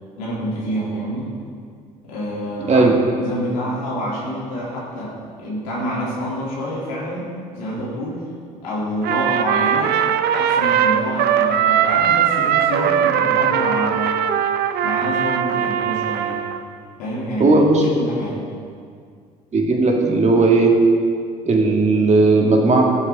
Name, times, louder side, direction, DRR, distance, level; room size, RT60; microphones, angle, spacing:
voice 1, 0.2-1.3 2.0-8.2 8.6-10.0 10.3-14.1 14.8-16.4 17.0-17.6 17.9-18.5, equal, 75° left, -7 dB, 3.0 m, -27 dB
Trumpet, 9.0-16.6, right 9 dB, 50° right, 0.7 m, -19 dB
voice 2, 17.4-17.8 19.5-20.8 21.5-22.8, right 3 dB, 35° right, 0 dB, 2.2 m, -15 dB
16.5 x 7.4 x 3.7 m, 2.2 s
hypercardioid pair, 60°, 21 cm